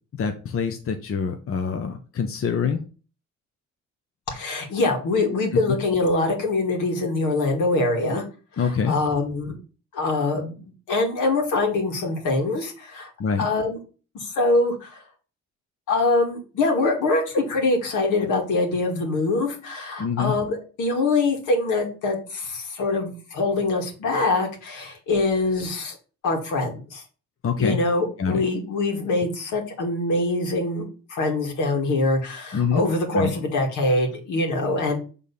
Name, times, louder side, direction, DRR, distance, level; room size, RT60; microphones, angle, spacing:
voice 1, 0.2-2.8 5.7-5.8 8.6-9.0 13.2-13.5 20.0-20.4 27.4-27.8 28.2-28.4 32.5-32.8 33.1-33.3, left 6 dB, 45° left, 5 dB, 0.9 m, -25 dB
voice 2, 4.3-8.2 8.6-9.5 9.9-13.1 13.4-13.8 14.1-15.0 15.9-26.0 26.2-27.0 27.6-35.0, left 2 dB, 85° left, 2 dB, 2.2 m, -24 dB
6.4 x 3.6 x 5.6 m, 0.36 s
cardioid pair, 90°, 30 cm